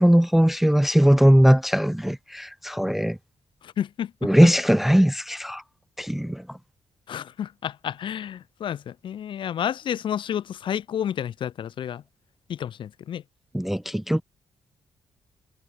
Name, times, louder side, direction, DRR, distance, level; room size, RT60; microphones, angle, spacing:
voice 1, 0.0-3.2 4.2-5.6 6.0-6.6 13.5-14.2, equal, 5° right, 0.4 m, -19 dB
voice 2, 3.6-4.5 7.1-12.0 12.5-13.2, left 9 dB, 65° left, 2.0 m, -30 dB
cardioid pair, 115°, 9 cm